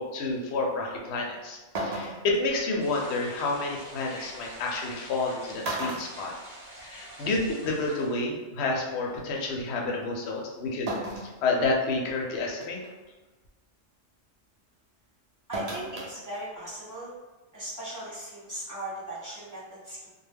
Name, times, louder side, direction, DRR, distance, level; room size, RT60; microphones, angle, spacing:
voice 1, 0.0-1.6 1.8-6.3 6.8-12.8, left 3 dB, 65° left, -1 dB, 0.8 m, -29 dB
sound 1, 1.2-1.3 1.7-2.4 4.0-4.1 5.1-5.3 5.6-7.0 7.4-7.5 8.7-8.8 10.9-11.4 11.9-12.0 12.6-12.9 15.5-16.1 16.5-16.6, right 1 dB, 70° right, 0.3 m, -34 dB
sound 2, 2.8-8.2, right 1 dB, 45° right, 0.8 m, -46 dB
voice 2, 15.5-17.1 17.5-20.1, right 1 dB, 15° right, -10 dB, 0.9 m, -38 dB
2.2 x 2.0 x 3.3 m, 1.2 s
omnidirectional pair, 1.3 m